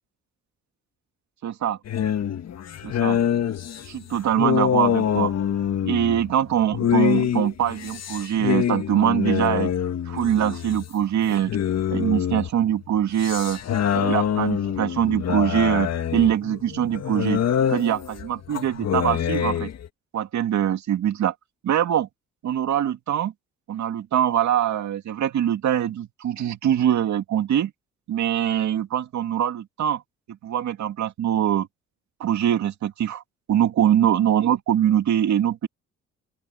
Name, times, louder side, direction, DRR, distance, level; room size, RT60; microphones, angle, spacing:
voice 1, 1.4-1.8 2.8-3.2 3.8-5.3 5.9-9.7 10.1-11.5 11.9-13.6 13.9-17.4 17.7-19.7 20.1-21.3 21.6-22.1 22.4-23.3 23.7-27.7 28.1-30.0 30.3-31.7 32.2-33.2 33.5-35.7, right 10 dB, 70° right, 2.4 m, -23 dB
sound 1, 1.8-11.0 11.3-19.9, left 9 dB, 60° left, 1.8 m, -25 dB
open air
cardioid pair, 90°, 30 cm